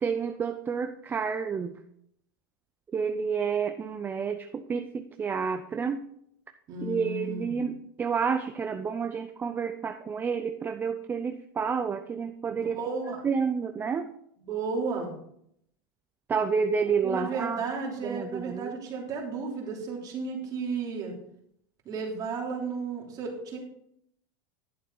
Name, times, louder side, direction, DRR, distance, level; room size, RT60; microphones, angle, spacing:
voice 1, 0.0-1.7 2.9-6.0 6.8-12.8 13.2-14.1 16.3-17.6 18.0-18.7, right 6 dB, 20° right, 7 dB, 0.5 m, -29 dB
voice 2, 6.7-7.6 12.7-13.3 14.5-15.1 17.0-21.1 21.8-23.6, right 4 dB, 35° right, -1 dB, 3.1 m, -33 dB
11.5 x 6.9 x 4.0 m, 0.71 s
supercardioid pair, 135°, 11 cm